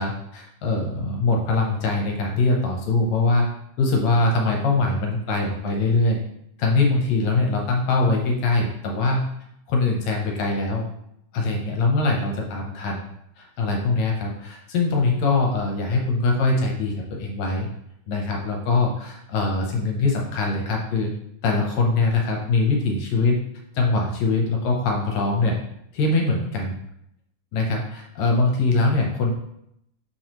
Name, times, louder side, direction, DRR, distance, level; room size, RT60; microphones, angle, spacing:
voice 1, 0.0-3.5 3.8-6.2 6.6-9.3 9.7-10.9 11.3-13.0 13.4-17.7 18.1-21.1 21.4-23.4 23.7-25.6 25.9-26.8 27.5-29.3, left 3 dB, 70° left, 0 dB, 1.8 m, -22 dB
7.1 x 4.7 x 3.0 m, 0.76 s
omnidirectional pair, 3.9 m